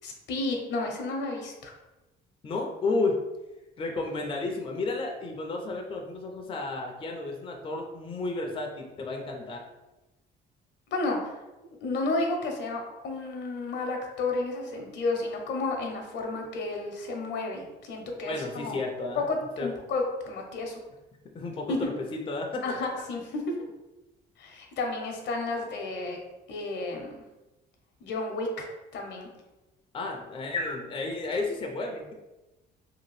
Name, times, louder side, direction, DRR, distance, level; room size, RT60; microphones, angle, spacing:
voice 1, 0.0-1.7 10.9-11.4 11.8-18.8 19.2-20.8 21.7-21.8 22.6-23.5 24.4-26.2 26.5-27.2 28.0-28.7 28.9-29.3, left 2 dB, 70° left, 2 dB, 0.7 m, -32 dB
voice 2, 2.4-3.2 3.8-9.6 18.2-19.3 19.6-19.7 21.3-22.6 29.9-32.1, left 3 dB, 30° left, 1 dB, 0.4 m, -32 dB
2.8 x 2.3 x 3.1 m, 1.0 s
cardioid pair, 95°, 19 cm